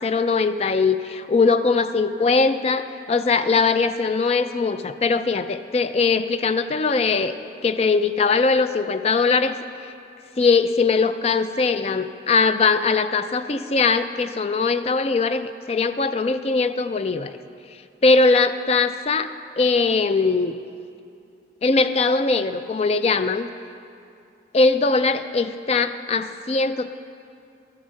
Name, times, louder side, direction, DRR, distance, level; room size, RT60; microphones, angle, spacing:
voice 1, 0.0-1.0 1.3-7.4 7.6-9.6 10.4-17.4 18.0-19.3 19.6-20.6 21.6-23.5 24.5-26.9, left 4 dB, 35° left, 11 dB, 0.3 m, -21 dB
13.5 x 7.0 x 6.4 m, 2.5 s
head